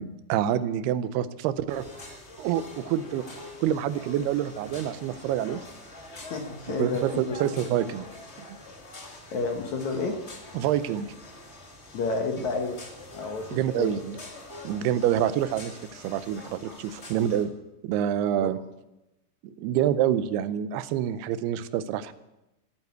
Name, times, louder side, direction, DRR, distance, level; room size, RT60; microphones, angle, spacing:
voice 1, 0.0-1.8 2.4-3.2 3.6-5.6 6.8-8.1 10.5-11.1 12.4-12.5 13.5-14.2 14.6-17.5 17.8-18.6 19.4-22.1, right 10 dB, 85° right, 14 dB, 2.7 m, -27 dB
sound 1, 1.7-17.4, left 2 dB, 35° left, 1.0 m, -45 dB
voice 2, 6.3-7.4 9.3-10.2 11.9-12.8 13.1-13.9 18.4-18.5, left 4 dB, 60° left, 4 dB, 2.1 m, -30 dB
16.0 x 9.1 x 8.0 m, 0.93 s
omnidirectional pair, 4.6 m